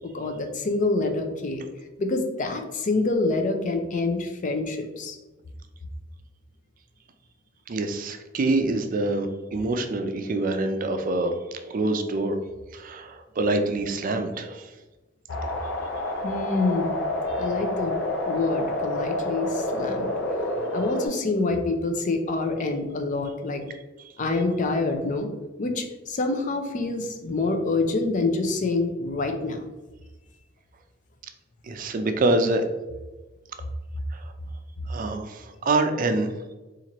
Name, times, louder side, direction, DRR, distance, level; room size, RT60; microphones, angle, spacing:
voice 1, 0.0-1.6 2.0-5.2 16.2-16.9 17.4-20.1 20.7-23.6 24.2-25.3 25.6-29.6, left 3 dB, 40° left, 5 dB, 0.5 m, -26 dB
voice 2, 7.7-11.3 11.7-12.4 12.7-14.7 31.7-32.6 34.1-34.3 34.9-36.3, right 2 dB, 45° right, 7 dB, 0.4 m, -25 dB
sound 1, 15.3-21.1, left 1 dB, 90° left, 0.7 m, -28 dB
4.2 x 2.5 x 2.9 m, 1.1 s
head